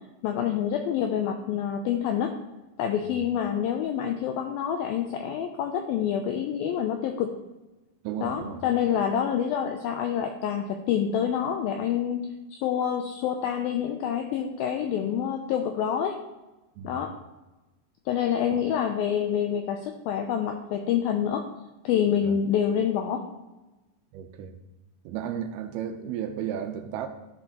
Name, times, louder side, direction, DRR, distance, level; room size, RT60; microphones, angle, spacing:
voice 1, 0.2-2.3 2.8-7.3 8.2-16.2 16.8-17.1 18.1-21.5 21.8-23.2, left 9 dB, 90° left, 4 dB, 2.1 m, -27 dB
voice 2, 8.0-8.6 16.8-17.0 22.2-22.4 24.1-24.5 25.1-27.1, right 9 dB, 80° right, 7 dB, 2.4 m, -33 dB
13.5 x 6.2 x 2.9 m, 1.1 s
omnidirectional pair, 4.8 m